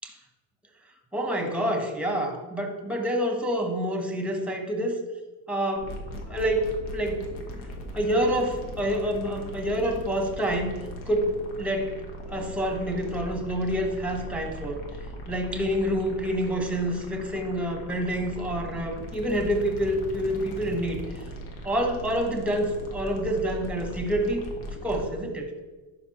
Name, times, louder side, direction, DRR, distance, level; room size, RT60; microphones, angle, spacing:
voice 1, 1.1-5.0 5.5-7.6 7.9-10.8 11.1-12.0 12.3-14.8 15.3-21.0 21.6-25.5, equal, 5° right, 4 dB, 1.1 m, -27 dB
sound 1, 5.7-25.2, equal, 75° left, 1.5 m, -39 dB
11.0 x 5.3 x 3.0 m, 1.2 s
cardioid pair, 125°, 38 cm